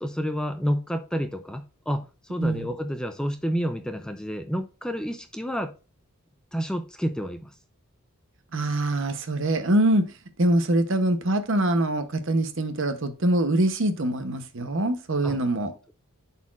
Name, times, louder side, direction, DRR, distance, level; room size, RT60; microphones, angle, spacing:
voice 1, 0.0-5.7 6.5-7.5 15.2-15.4, equal, 5° left, 0.4 m, -29 dB
voice 2, 2.4-2.7 8.5-10.0 10.4-15.7, right 1 dB, 60° right, 0.9 m, -24 dB
11.0 x 4.2 x 2.5 m
head